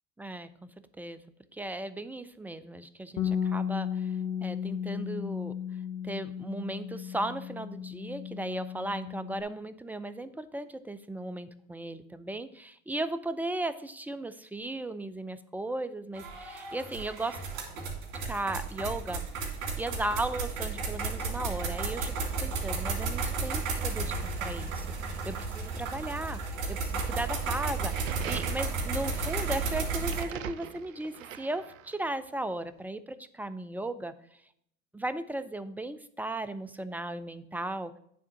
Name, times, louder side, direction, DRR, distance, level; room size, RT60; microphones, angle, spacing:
voice 1, 0.2-0.7 1.0-1.2 1.5-4.1 4.4-5.5 6.0-17.4 18.2-19.2 19.8-34.1 34.9-37.9, right 2 dB, 5° right, 13 dB, 0.4 m, -36 dB
Bass guitar, 3.2-9.4, left 8 dB, 45° left, 1.2 m, -34 dB
sound 1, 16.1-30.2, right 4 dB, 70° right, 2.3 m, -33 dB
sound 2, 27.8-32.1, right 11 dB, 85° right, 0.5 m, -42 dB
9.5 x 3.6 x 5.7 m, 0.69 s
hypercardioid pair, 75°, 38 cm